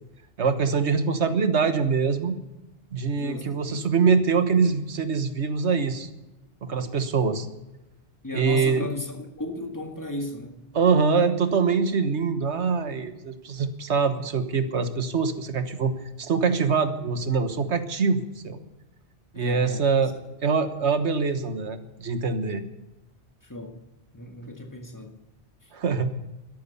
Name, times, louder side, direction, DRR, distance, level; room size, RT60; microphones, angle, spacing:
voice 1, 0.4-2.4 2.9-6.1 6.6-7.5 8.3-8.9 10.7-18.6 19.3-20.1 20.4-22.6 25.7-26.1, right 5 dB, 85° right, 10 dB, 1.6 m, -24 dB
voice 2, 3.2-3.9 8.2-10.6 19.3-20.1 23.4-23.8 24.1-25.1 25.6-25.7, left 2 dB, 15° left, 3 dB, 2.0 m, -35 dB
13.5 x 11.0 x 8.3 m, 1.0 s
omnidirectional pair, 1.1 m